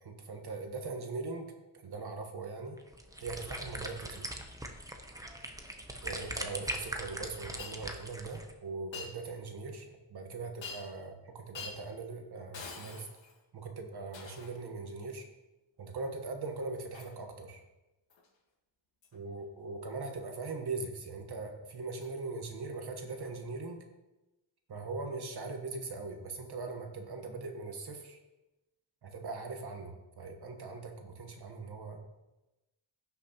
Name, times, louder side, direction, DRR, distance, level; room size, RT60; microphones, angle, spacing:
voice 1, 0.0-2.8 3.2-4.3 6.0-13.1 13.5-15.2 15.8-17.6 19.1-23.8 24.7-28.2 29.0-32.0, right 3 dB, 55° right, 4 dB, 1.3 m, -41 dB
sound 1, 2.8-8.5, right 1 dB, 5° right, 0.7 m, -41 dB
Shatter, 7.6-7.8 8.9-9.1 10.6-11.0 11.5-11.8 12.5-13.4 14.1-14.6 16.9-17.2 18.1-18.3 19.0-19.2 22.0-22.1 23.2-23.3, left 4 dB, 70° left, 1.6 m, -45 dB
16.0 x 6.1 x 3.0 m, 1.0 s
wide cardioid pair, 145°, 47 cm